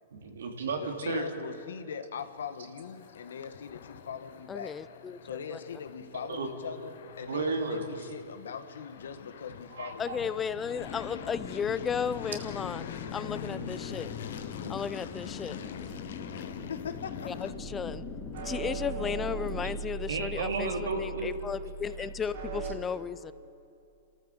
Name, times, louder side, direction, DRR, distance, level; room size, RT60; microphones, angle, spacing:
voice 1, 0.1-1.2 6.3-6.5 7.2-7.8 9.7-10.2 20.1-21.3, right 4 dB, 90° right, 3.0 m, -33 dB
voice 2, 0.8-4.7 5.2-10.4 16.7-17.3, left 7 dB, 90° left, 1.6 m, -41 dB
sound 1, 2.2-17.5, left 8 dB, 75° left, 1.4 m, -45 dB
voice 3, 4.5-5.6 10.0-14.1 14.7-15.6 17.2-18.0 18.4-23.3, left 6 dB, 15° left, 0.5 m, -35 dB
sound 2, 10.7-19.8, left 6 dB, 35° left, 2.4 m, -42 dB
sound 3, 17.5-22.8, right 4 dB, 60° right, 3.9 m, -39 dB
29.0 x 13.5 x 7.8 m
hypercardioid pair, 145°, 0 cm